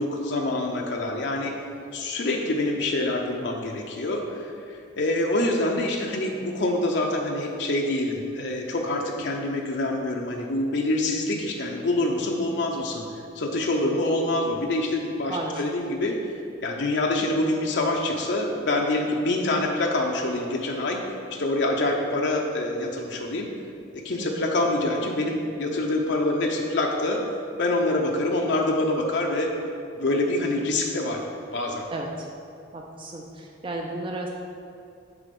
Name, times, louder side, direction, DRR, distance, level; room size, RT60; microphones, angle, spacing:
voice 1, 0.0-1.5 1.9-13.0 13.3-16.2 16.6-21.0 21.3-23.5 23.9-27.3 27.6-29.5 29.9-31.2 31.5-31.8, left 2 dB, 60° left, 0 dB, 0.6 m, -26 dB
voice 2, 15.3-15.6 24.2-24.3 31.9-32.3 32.7-34.3, right 2 dB, 25° right, 0 dB, 0.4 m, -33 dB
7.0 x 4.1 x 5.2 m, 2.6 s
head